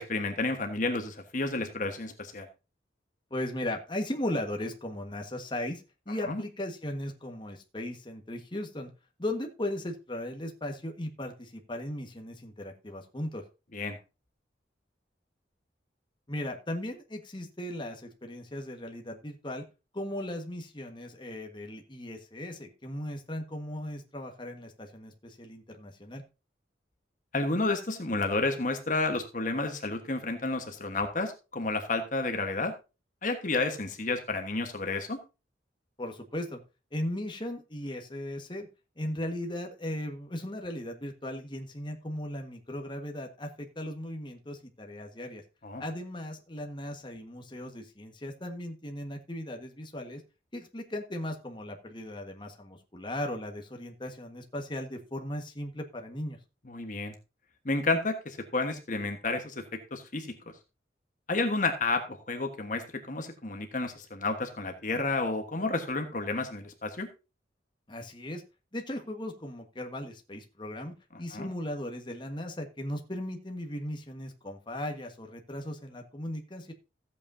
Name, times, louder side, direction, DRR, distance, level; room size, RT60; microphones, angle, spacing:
voice 1, 0.0-2.5 6.3-6.4 13.7-14.0 27.3-32.7 33.2-35.2 45.6-45.8 56.7-57.1 57.6-59.6 59.9-60.3 61.3-67.1 71.3-71.5, left 3 dB, 45° left, 5 dB, 1.4 m, -31 dB
voice 2, 3.3-8.9 9.2-13.4 16.3-19.6 19.9-26.2 36.0-36.6 36.9-38.7 39.0-45.4 45.8-50.2 50.5-56.4 67.9-68.4 68.7-76.7, left 1 dB, 25° left, 3 dB, 1.5 m, -37 dB
15.0 x 8.4 x 2.7 m, 0.29 s
head